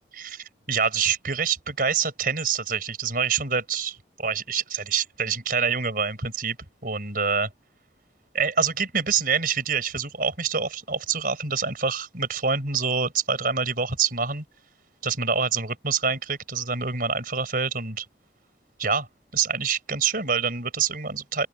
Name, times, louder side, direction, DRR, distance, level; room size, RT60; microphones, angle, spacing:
voice 1, 0.2-6.6 6.8-7.5 8.3-14.4 15.0-18.1 18.8-19.1 19.3-21.5, right 6 dB, 50° right, 5.3 m, -26 dB
open air
head